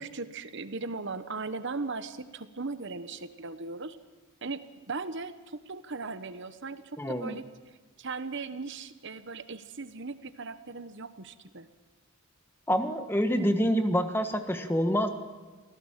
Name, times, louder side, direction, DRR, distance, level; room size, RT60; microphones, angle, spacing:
voice 1, 0.0-4.0 4.4-7.4 8.0-11.7, right 3 dB, 55° right, 12 dB, 1.1 m, -38 dB
voice 2, 7.0-7.4 12.7-15.1, equal, 10° left, 7 dB, 1.5 m, -27 dB
25.5 x 17.0 x 7.4 m, 1.3 s
head